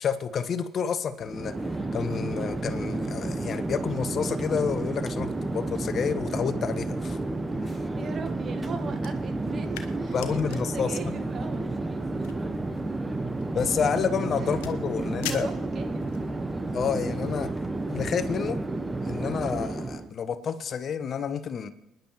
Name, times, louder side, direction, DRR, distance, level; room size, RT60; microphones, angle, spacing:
voice 1, 0.0-1.5 1.9-7.2 7.6-7.8 10.1-11.0 13.5-15.5 16.7-17.5 17.9-18.6 19.0-21.7, left 7 dB, 50° left, 12 dB, 0.9 m, -29 dB
Chatter / Fixed-wing aircraft airplane, 1.2-20.1, right 2 dB, 20° right, 0.9 m, -31 dB
voice 2, 8.0-12.3 14.4-14.6 15.2-16.1, right 4 dB, 45° right, 6 dB, 1.6 m, -39 dB
sound 1, 9.0-16.3, left 10 dB, 80° left, 0.8 m, -44 dB
28.5 x 10.5 x 3.1 m, 0.91 s
hypercardioid pair, 55°, 0 cm